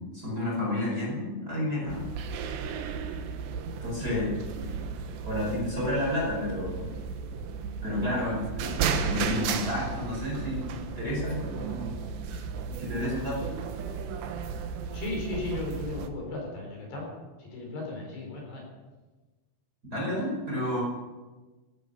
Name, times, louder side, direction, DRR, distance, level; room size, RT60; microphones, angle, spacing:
voice 1, 0.0-2.0 3.8-4.3 4.5-4.7 5.2-6.9 7.8-11.9 12.3-12.4 12.8-13.5 19.9-20.8, left 1 dB, 20° right, -4 dB, 5.0 m, -31 dB
sound 1, 1.9-16.1, right 6 dB, 70° right, 3.0 m, -34 dB
voice 2, 4.0-4.3 14.9-17.1 17.4-18.6, left 3 dB, 55° left, 0 dB, 6.2 m, -36 dB
16.0 x 13.0 x 6.8 m, 1.2 s
omnidirectional pair, 5.8 m